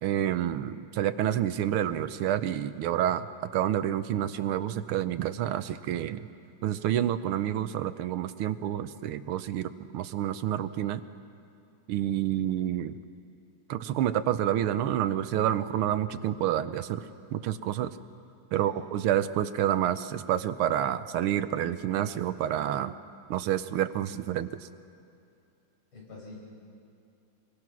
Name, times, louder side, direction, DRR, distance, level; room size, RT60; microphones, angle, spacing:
voice 1, 0.0-3.3 3.5-6.3 6.6-11.0 11.9-13.0 13.7-17.0 17.3-17.9 18.5-22.9 23.3-24.6, right 11 dB, 90° right, 12 dB, 1.7 m, -28 dB
voice 2, 18.5-18.9 25.9-26.4, left 3 dB, 85° left, -5 dB, 8.3 m, -45 dB
26.5 x 23.0 x 6.2 m, 2.6 s
omnidirectional pair, 2.3 m